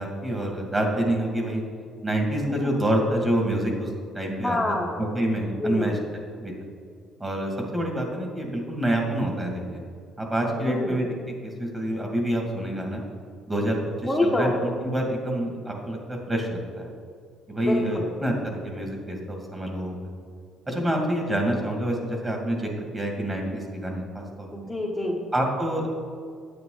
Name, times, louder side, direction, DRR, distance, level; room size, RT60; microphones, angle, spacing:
voice 1, 0.0-1.6 2.0-3.9 4.1-4.6 5.0-6.0 6.4-6.5 7.2-9.8 10.2-11.1 11.4-13.0 13.5-16.9 17.5-20.0 20.7-24.5 25.3-25.9, right 1 dB, 15° right, 1 dB, 2.0 m, -27 dB
voice 2, 4.4-4.9 5.4-5.9 10.6-11.0 14.1-14.5 17.6-18.0 24.5-25.2, left 2 dB, 5° left, -4 dB, 1.0 m, -26 dB
9.7 x 8.7 x 3.9 m, 2.2 s
cardioid pair, 115°, 0 cm